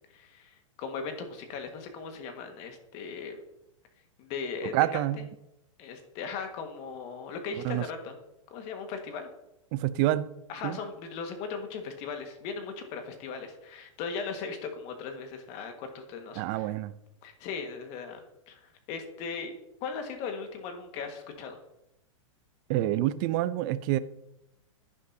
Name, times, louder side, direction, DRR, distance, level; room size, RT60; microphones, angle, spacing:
voice 1, 0.1-3.4 4.2-5.0 5.8-8.2 8.5-9.3 10.5-16.7 17.2-19.5 19.8-21.6, left 5 dB, 40° left, 5 dB, 1.7 m, -38 dB
voice 2, 4.7-5.3 7.6-7.8 9.7-10.3 10.6-10.8 16.4-16.9 22.7-24.0, right 15 dB, 40° right, 15 dB, 0.5 m, -27 dB
11.0 x 9.8 x 2.8 m, 0.86 s
hypercardioid pair, 140°, 17 cm